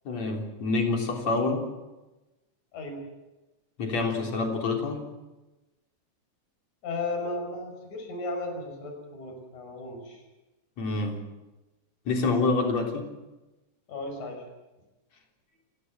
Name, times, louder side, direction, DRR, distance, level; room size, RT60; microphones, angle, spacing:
voice 1, 0.1-1.6 3.8-5.0 10.8-11.2 12.1-13.1, left 3 dB, 65° left, 2 dB, 4.8 m, -27 dB
voice 2, 6.8-10.2 13.9-14.4, left 2 dB, 80° left, 3 dB, 7.3 m, -35 dB
30.0 x 16.0 x 7.6 m, 1.1 s
omnidirectional pair, 3.4 m